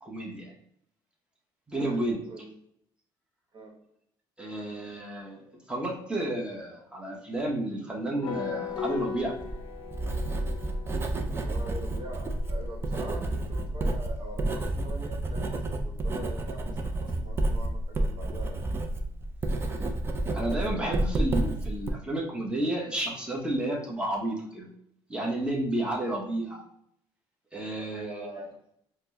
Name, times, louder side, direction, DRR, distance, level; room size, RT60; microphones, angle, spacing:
voice 1, 0.0-0.5 1.7-2.2 4.4-5.4 5.7-9.3 20.3-24.7 25.1-26.6 27.5-28.5, right 1 dB, 10° right, -1 dB, 0.9 m, -31 dB
voice 2, 1.8-2.5 3.5-3.9 11.3-18.6 25.9-26.1 27.8-28.6, right 2 dB, 55° right, 0 dB, 1.1 m, -43 dB
sound 1, 8.2-12.9, left 7 dB, 55° left, 0.5 m, -38 dB
Writing, 9.2-21.9, right 2 dB, 25° right, 0.4 m, -30 dB
4.3 x 2.1 x 2.6 m, 0.73 s
cardioid pair, 100°, 9 cm